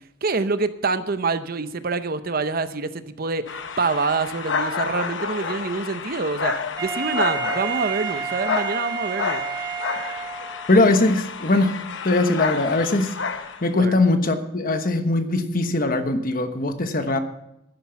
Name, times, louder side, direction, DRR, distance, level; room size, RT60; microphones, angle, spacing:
voice 1, 0.2-6.5 6.8-9.4 13.8-14.0 17.1-17.2, right 4 dB, 50° right, 12 dB, 0.7 m, -26 dB
sound 1, 3.5-13.7, left 5 dB, 70° left, 1.0 m, -30 dB
Wind instrument woodwind instrument, 6.8-10.7, right 8 dB, 25° right, 4.0 m, -30 dB
voice 2, 10.7-13.1 13.6-17.2, left 2 dB, 45° left, 8 dB, 1.1 m, -21 dB
12.0 x 9.9 x 5.8 m, 0.83 s
head